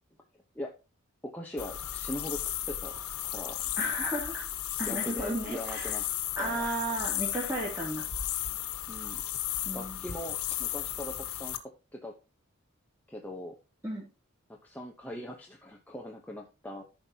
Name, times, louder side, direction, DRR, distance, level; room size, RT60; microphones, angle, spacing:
voice 1, 1.2-2.9 3.2-3.6 4.8-6.0 6.4-6.7 8.9-9.2 9.7-11.6 11.9-12.1 13.1-13.5 14.5-16.8, left 1 dB, 5° left, 1 dB, 0.9 m, -41 dB
sound 1, 1.6-11.6, left 11 dB, 90° left, 1.3 m, -35 dB
voice 2, 3.8-4.5 4.8-6.0 6.4-8.1 9.7-10.0 13.8-14.1, right 1 dB, 10° right, -5 dB, 2.6 m, -34 dB
14.5 x 5.3 x 2.9 m, 0.30 s
head